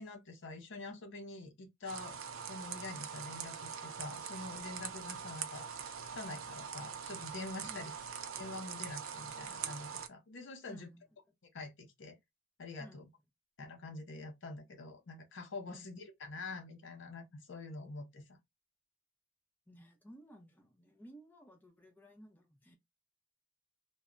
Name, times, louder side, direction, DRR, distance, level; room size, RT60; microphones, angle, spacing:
voice 1, 0.0-2.2 2.5-7.9 8.3-10.9 11.5-12.2 12.6-13.0 13.6-18.4, left 3 dB, 65° left, 0.7 m, -46 dB
sound 1, 1.9-10.1, right 7 dB, 90° right, 0.4 m, -43 dB
voice 2, 10.7-11.1 12.8-13.1 15.7-15.9 19.7-22.8, equal, 10° left, 0.6 m, -56 dB
2.2 x 2.0 x 3.5 m
head